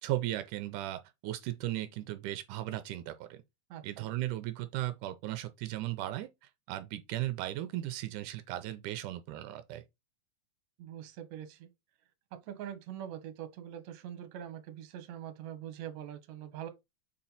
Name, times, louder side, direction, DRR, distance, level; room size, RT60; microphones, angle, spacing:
voice 1, 0.0-3.4 3.8-6.3 6.7-9.8, right 15 dB, 85° right, 2.1 m, -36 dB
voice 2, 3.7-4.0 10.8-11.7 12.3-16.7, right 10 dB, 65° right, 2.1 m, -43 dB
6.3 x 4.3 x 4.0 m
omnidirectional pair, 3.7 m